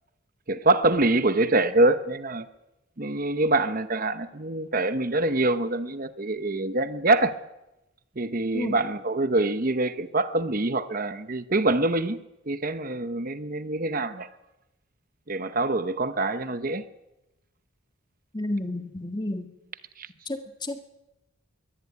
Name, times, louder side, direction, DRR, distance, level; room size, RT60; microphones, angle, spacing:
voice 1, 0.5-2.5 3.0-7.4 8.2-12.2 12.5-14.3 15.3-16.8 20.0-20.1, right 2 dB, 40° right, 11 dB, 0.9 m, -25 dB
voice 2, 18.3-19.5 20.3-20.9, left 1 dB, 20° left, 6 dB, 1.6 m, -31 dB
22.5 x 16.5 x 9.6 m, 0.97 s
head